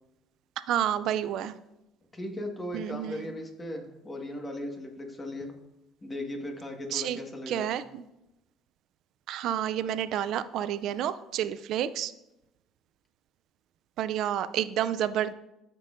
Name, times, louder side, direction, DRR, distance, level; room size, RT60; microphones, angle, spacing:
voice 1, 0.7-1.5 2.7-3.1 6.9-7.2 7.5-8.1 9.3-12.1 14.0-15.3, right 10 dB, 70° right, 13 dB, 0.4 m, -29 dB
voice 2, 2.1-5.5 6.0-7.7, left 1 dB, 20° left, 2 dB, 1.6 m, -37 dB
13.0 x 5.5 x 2.6 m, 0.90 s
cardioid pair, 100°, 0 cm